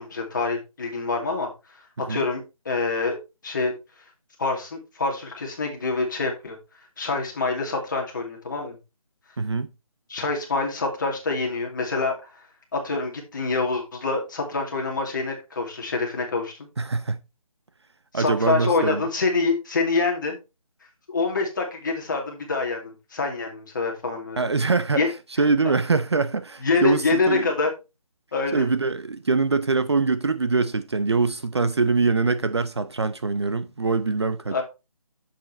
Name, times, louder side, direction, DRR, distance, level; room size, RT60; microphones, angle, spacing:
voice 1, 0.0-1.5 2.1-3.2 3.4-3.7 4.4-6.6 7.0-8.8 10.1-12.4 12.7-16.6 18.1-20.4 21.1-24.5 25.0-25.1 26.6-27.7 28.3-28.7 34.5-34.6, left 3 dB, 35° left, 2.4 m, -26 dB
voice 2, 9.4-9.7 16.8-17.2 18.1-19.0 24.4-25.0 25.4-27.5 28.5-34.6, right 4 dB, 45° right, 0.6 m, -23 dB
7.5 x 7.3 x 3.3 m
figure-of-eight pair, 170°, 19 cm